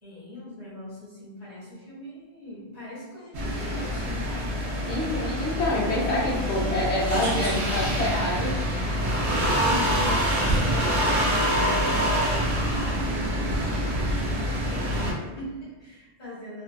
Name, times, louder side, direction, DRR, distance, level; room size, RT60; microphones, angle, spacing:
voice 1, 0.0-4.6 9.6-16.6, left 1 dB, 15° left, -11 dB, 1.2 m, -41 dB
sound 1, 3.3-15.1, equal, 75° right, 1.0 m, -26 dB
voice 2, 4.9-8.5, left 1 dB, 80° left, -5 dB, 0.9 m, -26 dB
2.6 x 2.5 x 2.2 m, 1.2 s
omnidirectional pair, 1.1 m